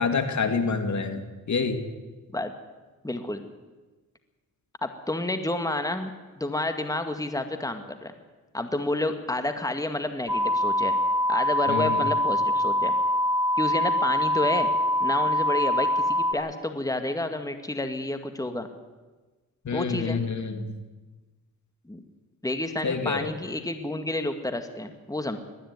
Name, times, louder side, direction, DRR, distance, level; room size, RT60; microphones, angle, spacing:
voice 1, 0.0-1.8 11.7-12.0 19.6-20.7 22.8-23.3, left 5 dB, 55° left, 7 dB, 2.5 m, -27 dB
voice 2, 3.0-3.4 4.8-8.1 8.5-10.9 11.3-13.0 13.6-14.7 15.0-18.7 19.7-20.2 21.9-22.0 22.4-25.4, left 2 dB, 10° left, 7 dB, 2.0 m, -30 dB
sound 1, 10.3-16.3, left 1 dB, 5° right, 3.2 m, -24 dB
19.5 x 13.5 x 9.7 m, 1.2 s
cardioid pair, 65°, 34 cm